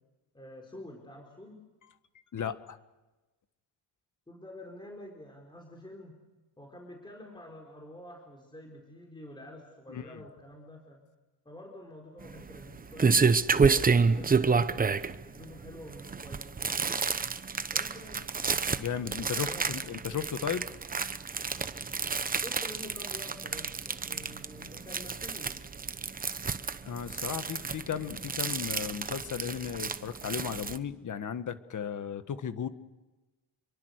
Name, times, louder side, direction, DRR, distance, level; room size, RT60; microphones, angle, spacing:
voice 1, 0.3-1.6 4.3-6.2 6.6-11.0 11.4-14.9 15.3-17.1 17.7-18.3 19.2-19.9 22.4-25.7, left 1 dB, 10° left, 0 dB, 4.5 m, -48 dB
voice 2, 2.3-2.8 9.9-10.2 18.8-20.7 26.9-32.7, left 8 dB, 45° left, 10 dB, 1.7 m, -35 dB
sound 1, 12.2-30.8, right 5 dB, 20° right, 0.9 m, -29 dB
28.0 x 23.5 x 6.6 m, 1.1 s
cardioid pair, 135°, 43 cm